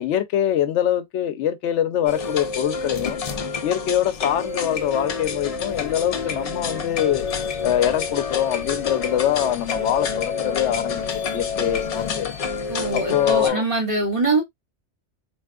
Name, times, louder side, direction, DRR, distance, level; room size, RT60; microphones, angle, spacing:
voice 1, 0.0-3.2 3.6-7.3 7.6-12.3 12.7-13.6, left 10 dB, 80° left, 0.9 m, -24 dB
sound 1, 2.1-13.5, left 5 dB, 60° left, 0.4 m, -28 dB
voice 2, 12.7-14.4, right 2 dB, 30° right, 1.5 m, -23 dB
3.4 x 2.8 x 2.3 m
omnidirectional pair, 1.2 m